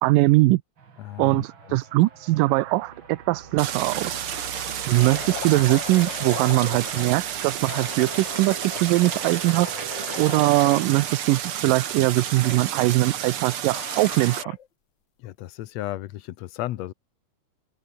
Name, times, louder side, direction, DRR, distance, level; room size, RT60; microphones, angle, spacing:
voice 1, 0.0-0.6 1.2-4.3 4.9-9.7 10.2-14.4, right 19 dB, 80° right, 2.3 m, -21 dB
sound 1, 0.8-11.2, right 6 dB, 40° right, 2.9 m, -44 dB
voice 2, 1.0-1.8 15.2-16.9, left 14 dB, 70° left, 1.7 m, -34 dB
sound 2, 2.7-3.0 3.3-3.4 3.9-7.2 7.6-10.8 12.2-12.6 13.7-14.7, left 8 dB, 55° left, 1.3 m, -38 dB
Stream, 3.6-14.4, right 10 dB, 55° right, 1.7 m, -31 dB
open air
omnidirectional pair, 3.9 m